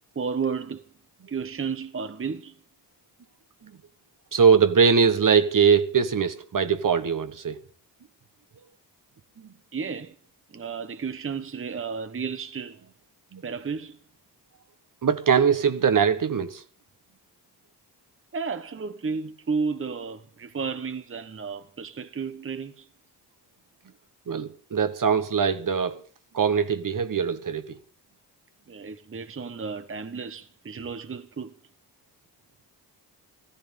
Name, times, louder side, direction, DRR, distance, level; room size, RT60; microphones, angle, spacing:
voice 1, 0.1-0.8 1.3-2.6 9.7-10.2 10.5-12.8 13.4-14.0 18.3-22.9 28.7-31.5, right 5 dB, 30° right, 1.0 m, -32 dB
voice 2, 4.3-7.6 9.4-9.5 13.3-13.4 15.0-16.6 24.3-26.0 26.3-27.8, right 6 dB, 50° right, 1.2 m, -22 dB
14.5 x 14.0 x 5.3 m
cardioid pair, 75°, 41 cm